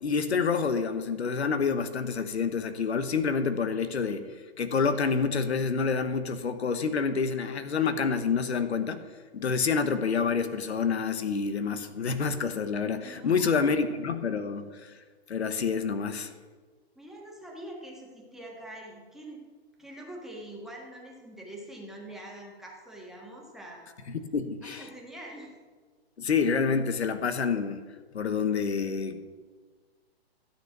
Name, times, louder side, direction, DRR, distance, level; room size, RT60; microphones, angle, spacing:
voice 1, 0.0-4.2 4.6-9.0 9.3-14.9 15.3-16.3 24.1-24.9 26.2-27.8 28.1-29.2, left 5 dB, 85° left, 10 dB, 1.1 m, -28 dB
voice 2, 13.0-13.9 16.9-19.5 19.8-24.0 24.6-25.6, right 1 dB, ahead, -2 dB, 1.6 m, -44 dB
13.0 x 6.8 x 6.0 m, 1.4 s
hypercardioid pair, 140°, 32 cm